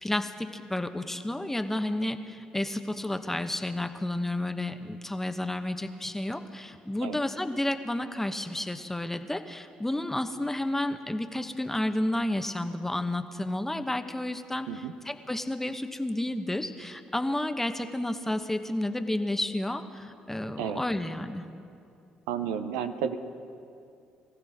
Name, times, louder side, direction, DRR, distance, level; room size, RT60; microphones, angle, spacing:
voice 1, 0.0-21.4, left 1 dB, 10° left, 8 dB, 1.0 m, -31 dB
voice 2, 22.3-23.2, right 8 dB, 85° right, 9 dB, 0.7 m, -32 dB
23.5 x 15.0 x 3.6 m, 2.5 s
hypercardioid pair, 55°, 3 cm